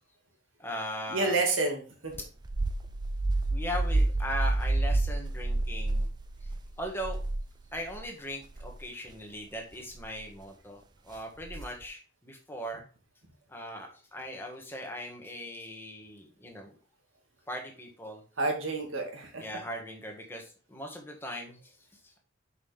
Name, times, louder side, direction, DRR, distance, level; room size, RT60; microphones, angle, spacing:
voice 1, 0.6-1.4 3.5-6.1 6.8-7.2 7.7-12.8 13.5-16.7 17.5-18.2 19.4-21.8 22.0-22.2, equal, 10° left, 1 dB, 1.6 m, -39 dB
voice 2, 1.1-2.1 18.4-19.4, right 3 dB, 85° right, 2 dB, 2.0 m, -29 dB
sound 1, 2.1-8.0 8.5-8.8 10.0-10.3 11.4-11.8, right 2 dB, 20° right, 0.4 m, -30 dB
6.4 x 5.6 x 3.4 m, 0.37 s
head